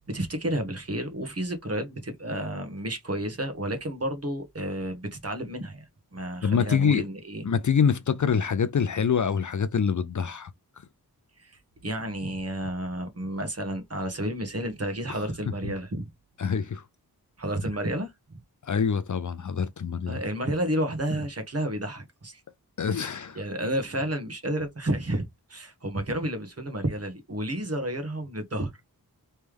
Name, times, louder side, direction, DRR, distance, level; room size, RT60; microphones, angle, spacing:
voice 1, 0.0-5.8 6.1-7.4 11.4-16.1 17.4-18.4 20.1-22.4 23.3-28.7, right 1 dB, 40° right, 1.2 m, -31 dB
voice 2, 6.4-7.0 7.4-10.5 15.1-15.2 15.6-15.7 16.4-16.8 18.6-20.2 22.8-23.4, left 6 dB, 50° left, 0.5 m, -25 dB
3.3 x 3.2 x 3.5 m
wide cardioid pair, 80°, 38 cm